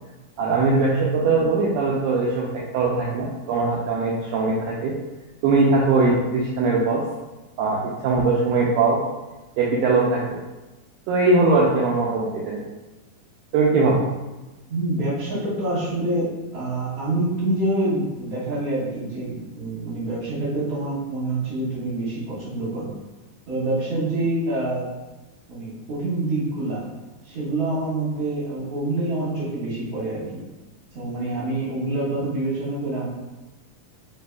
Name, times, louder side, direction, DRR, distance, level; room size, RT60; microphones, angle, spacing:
voice 1, 0.4-4.9 5.4-7.0 7.6-9.0 9.6-10.4 11.1-12.7 13.5-14.0, right 3 dB, 80° right, -4 dB, 1.9 m, -21 dB
voice 2, 14.7-22.9 23.5-24.9 25.5-26.8 27.2-30.4 30.9-33.1, right 2 dB, 50° right, -9 dB, 2.2 m, -26 dB
6.6 x 2.7 x 2.3 m, 1.1 s
omnidirectional pair, 4.0 m